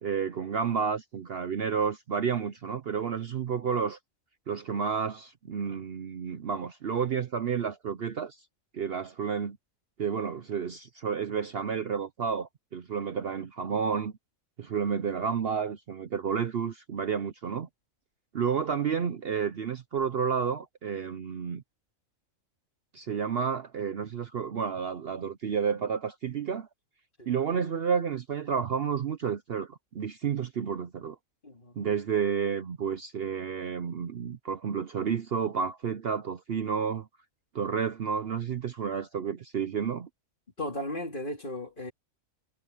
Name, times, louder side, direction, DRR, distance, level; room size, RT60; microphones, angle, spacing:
voice 1, 0.0-4.0 4.5-8.4 8.7-9.6 10.0-14.1 14.6-17.7 18.3-21.6 22.9-26.7 27.3-31.2 31.8-37.1 37.5-40.1, right 6 dB, 55° right, 0.8 m, -31 dB
voice 2, 31.4-31.7 40.6-41.9, left 1 dB, 35° left, 2.9 m, -35 dB
omnidirectional pair, 1.4 m